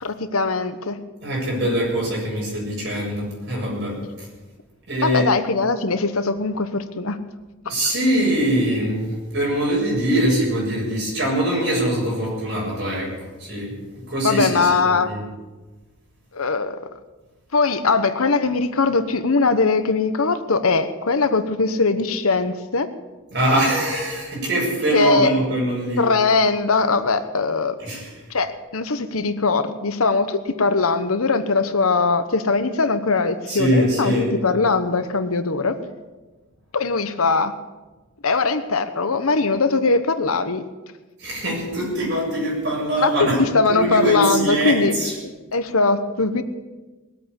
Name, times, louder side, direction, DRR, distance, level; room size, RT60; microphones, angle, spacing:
voice 1, 0.0-1.0 5.0-7.2 14.2-15.1 16.3-16.8 17.5-22.9 24.9-25.3 26.0-27.7 28.3-34.1 34.4-35.8 36.7-37.5 38.2-40.6 43.0-44.9 45.2-46.4, left 4 dB, 80° left, 10 dB, 1.1 m, -21 dB
voice 2, 1.2-4.3 4.9-5.3 7.7-13.1 13.4-15.2 23.3-26.1 27.8-28.1 33.5-34.3 41.2-45.1, right 1 dB, 50° right, -3 dB, 7.4 m, -23 dB
20.0 x 8.5 x 8.3 m, 1.2 s
head